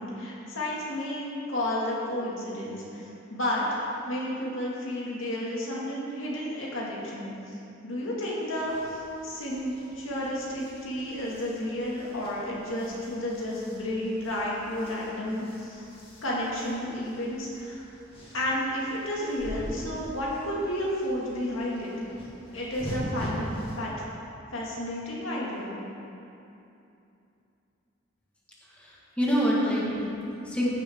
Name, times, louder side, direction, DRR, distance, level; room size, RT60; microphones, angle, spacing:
voice 1, 0.0-3.0 3.3-7.6 7.8-15.8 16.2-17.8 18.3-21.9 22.5-23.5 23.8-23.9 24.5-25.8, left 1 dB, 80° left, -5 dB, 2.1 m, -31 dB
sound 1, 8.6-23.8, equal, 30° left, 1.8 m, -43 dB
voice 2, 28.8-30.7, equal, 5° left, -6 dB, 1.5 m, -27 dB
15.5 x 6.1 x 3.6 m, 2.7 s
head